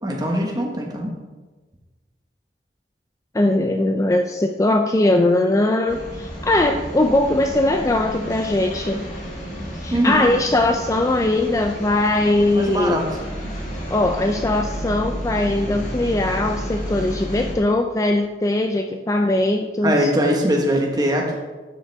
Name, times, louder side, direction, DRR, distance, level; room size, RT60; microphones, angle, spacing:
voice 1, 0.0-1.1 9.9-10.2 12.5-13.0 19.8-21.4, equal, 20° right, 0 dB, 1.3 m, -21 dB
voice 2, 3.3-9.1 9.8-13.0 13.9-20.1, left 2 dB, 20° left, 5 dB, 0.4 m, -20 dB
sound 1, 5.9-17.5, equal, 45° left, 2.0 m, -31 dB
11.5 x 6.8 x 3.5 m, 1.3 s
head